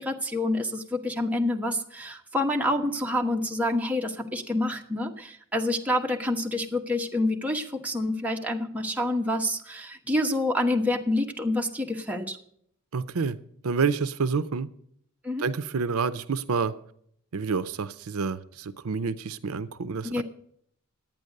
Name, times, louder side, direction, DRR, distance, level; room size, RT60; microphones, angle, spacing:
voice 1, 0.0-12.4 15.2-15.5 20.0-20.2, left 1 dB, 5° right, 1.2 m, -27 dB
voice 2, 12.9-13.4 13.6-14.7 15.4-16.7 17.3-20.2, right 5 dB, 75° right, 0.6 m, -28 dB
10.5 x 9.1 x 6.5 m
head